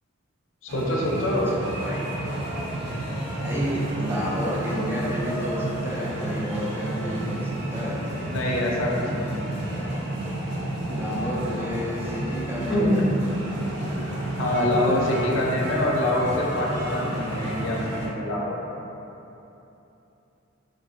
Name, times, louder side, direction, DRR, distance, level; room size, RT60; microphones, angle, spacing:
voice 1, 0.6-1.5 8.2-9.5 12.7-13.1 14.4-18.6, left 1 dB, 80° left, -3 dB, 0.5 m, -25 dB
sound 1, 0.7-18.1, right 1 dB, 60° right, 0.5 m, -31 dB
voice 2, 1.8-2.1 3.4-8.1 10.9-13.1 14.7-15.1, equal, 10° right, -6 dB, 0.3 m, -31 dB
3.2 x 2.6 x 2.6 m, 3.0 s
head